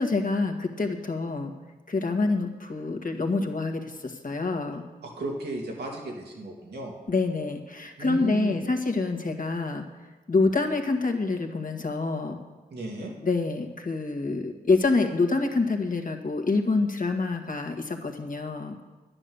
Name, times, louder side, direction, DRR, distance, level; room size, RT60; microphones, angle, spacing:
voice 1, 0.0-1.5 1.9-4.8 7.1-9.9 10.3-12.4 13.2-18.8, left 3 dB, 55° left, 4 dB, 1.8 m, -26 dB
voice 2, 5.0-6.9 8.0-8.6 12.7-13.1, right 2 dB, 90° right, -1 dB, 2.3 m, -35 dB
11.0 x 9.8 x 7.1 m, 1.2 s
cardioid pair, 45°, 17 cm